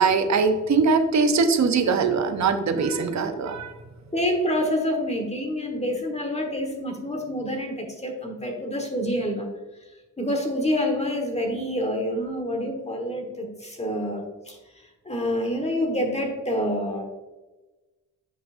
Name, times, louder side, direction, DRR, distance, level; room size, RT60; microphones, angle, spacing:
voice 1, 0.0-3.7, right 4 dB, 55° right, 8 dB, 0.8 m, -21 dB
voice 2, 4.1-9.5 10.2-14.6 15.0-17.0, equal, 20° left, 2 dB, 1.4 m, -27 dB
7.7 x 5.9 x 2.5 m, 1.1 s
cardioid pair, 95°, 33 cm